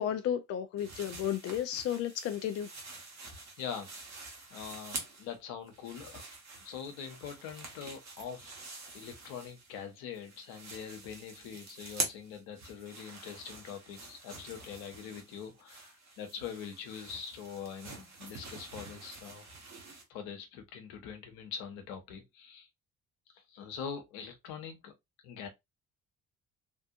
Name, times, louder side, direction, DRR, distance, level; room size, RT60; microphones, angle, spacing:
voice 1, 0.0-2.7, left 10 dB, 40° left, 0.4 m, -33 dB
sound 1, 0.8-5.4 5.7-9.9 10.1-20.0, right 3 dB, 40° right, 1.3 m, -46 dB
voice 2, 3.6-3.9 4.5-6.2 6.6-8.5 8.9-19.4 20.1-22.7 23.3-24.9 25.2-25.5, left 7 dB, 60° left, 0.9 m, -43 dB
3.5 x 2.6 x 2.4 m
figure-of-eight pair, 45°, 41 cm